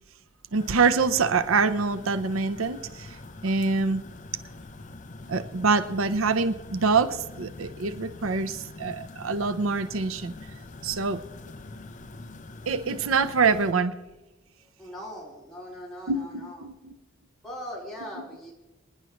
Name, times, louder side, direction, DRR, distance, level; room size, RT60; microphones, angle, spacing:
sound 1, 0.5-13.7, left 2 dB, 40° left, 0.7 m, -44 dB
voice 1, 0.5-3.2 3.4-4.0 5.3-10.3 10.8-11.2 12.7-14.0 16.1-16.9, right 4 dB, 90° right, 11 dB, 0.7 m, -25 dB
voice 2, 14.8-16.6 17.4-18.5, equal, ahead, -6 dB, 4.1 m, -40 dB
25.5 x 10.5 x 3.1 m, 1.1 s
head